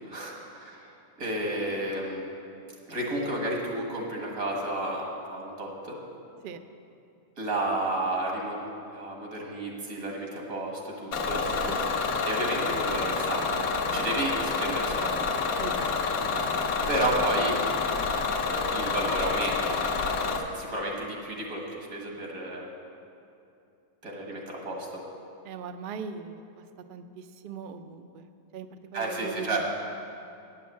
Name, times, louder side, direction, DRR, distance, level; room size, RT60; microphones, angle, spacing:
voice 1, 0.0-2.2 2.9-6.0 7.4-8.6 8.9-11.5 12.2-13.5 13.9-15.3 16.9-17.5 18.7-19.8 20.5-22.7 24.0-25.0 28.9-29.6, right 1 dB, 90° right, -1 dB, 2.1 m, -32 dB
Bus / Engine, 11.1-20.4, left 4 dB, 85° left, 1.3 m, -28 dB
voice 2, 15.6-16.4 17.0-17.1 17.5-17.6 25.4-26.6 26.9-29.6, right 6 dB, 70° right, 8 dB, 0.5 m, -40 dB
9.4 x 6.9 x 7.2 m, 2.6 s
omnidirectional pair, 1.5 m